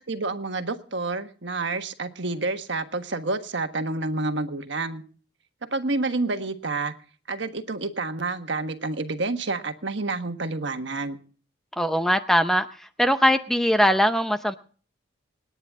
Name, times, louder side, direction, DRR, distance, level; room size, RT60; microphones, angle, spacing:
voice 1, 0.1-5.0 5.7-6.9 7.3-11.2, right 3 dB, 60° right, 7 dB, 1.4 m, -29 dB
voice 2, 11.8-14.5, equal, ahead, 8 dB, 0.6 m, -21 dB
28.5 x 9.9 x 3.6 m, 0.42 s
head